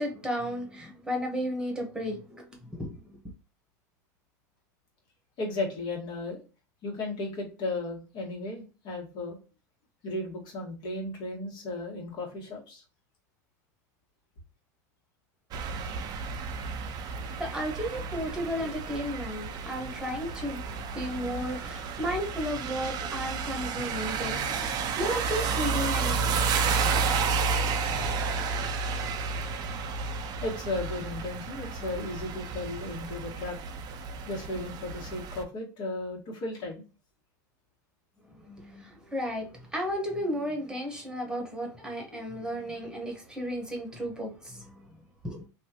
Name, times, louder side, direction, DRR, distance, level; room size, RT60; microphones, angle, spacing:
voice 1, 0.0-3.2 17.4-26.4 38.3-44.9 45.2-45.5, equal, 10° right, 1.2 m, -34 dB
voice 2, 5.4-6.4 6.8-9.4 10.0-12.8 30.4-33.6 34.3-36.8 42.1-42.2, left 2 dB, 55° left, 1.8 m, -35 dB
sound 1, 15.5-35.4, right 5 dB, 45° right, 0.5 m, -31 dB
sound 2, 23.8-25.2 25.9-26.5 27.6-28.4, left 3 dB, 25° left, 1.4 m, -44 dB
2.9 x 2.6 x 2.9 m
hypercardioid pair, 95°, 10 cm